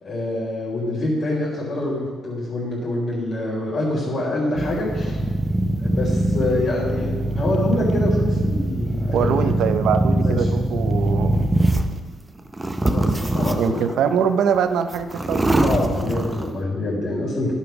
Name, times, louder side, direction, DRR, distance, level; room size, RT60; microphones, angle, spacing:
voice 1, 0.0-5.2 5.8-9.6 10.2-10.4 12.8-13.8 15.6-17.5, left 1 dB, 55° left, -9 dB, 3.2 m, -26 dB
sound 1, 4.6-12.0 12.5-13.9 14.5-14.6 14.9-16.5, right 1 dB, 15° right, 0.7 m, -22 dB
voice 2, 9.1-11.5 13.6-15.6, right 7 dB, 80° right, 9 dB, 0.6 m, -23 dB
11.0 x 5.7 x 5.9 m, 1.5 s
cardioid pair, 90°, 0 cm